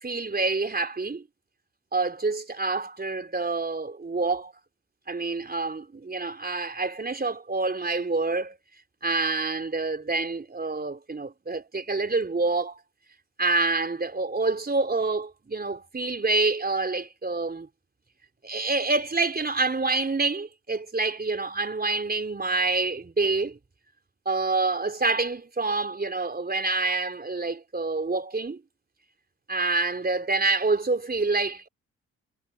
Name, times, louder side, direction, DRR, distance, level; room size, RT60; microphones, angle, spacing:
voice 1, 0.0-1.2 1.9-4.5 5.1-8.6 9.0-12.8 13.4-17.7 18.4-23.6 24.3-28.6 29.5-31.7, right 3 dB, 25° right, 4.1 m, -27 dB
hypercardioid pair, 50°, 37 cm